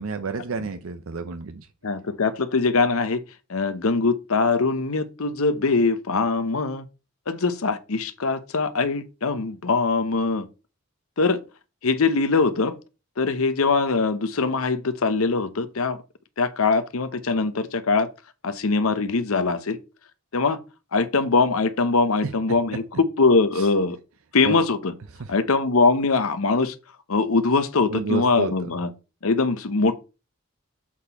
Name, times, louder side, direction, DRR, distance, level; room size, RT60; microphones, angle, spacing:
voice 1, 0.0-1.7 23.5-23.7 24.4-24.6 25.2-25.3 27.9-28.7, right 4 dB, 75° right, 0.7 m, -30 dB
voice 2, 1.8-3.2 3.5-6.9 7.3-10.5 11.2-11.4 11.8-12.8 13.2-16.0 16.4-18.1 18.4-19.8 20.3-20.6 20.9-22.8 23.2-24.0 24.3-24.9 25.3-26.7 27.1-28.9 29.2-30.0, left 4 dB, 80° left, 0.8 m, -22 dB
7.4 x 4.3 x 4.1 m
head